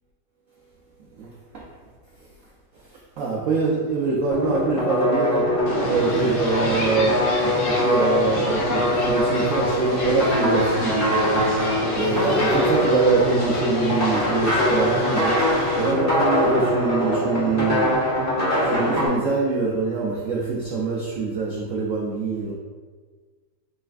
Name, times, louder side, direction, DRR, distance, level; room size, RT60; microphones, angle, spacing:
voice 1, 3.2-5.5 5.9-15.4 15.8-17.9 18.6-22.5, right 4 dB, 80° right, -4 dB, 0.7 m, -24 dB
sound 1, 4.3-19.1, left 1 dB, 10° left, 1.0 m, -23 dB
sound 2, 5.7-15.9, left 2 dB, 85° left, 1.5 m, -32 dB
4.1 x 3.3 x 2.4 m, 1.5 s
omnidirectional pair, 2.0 m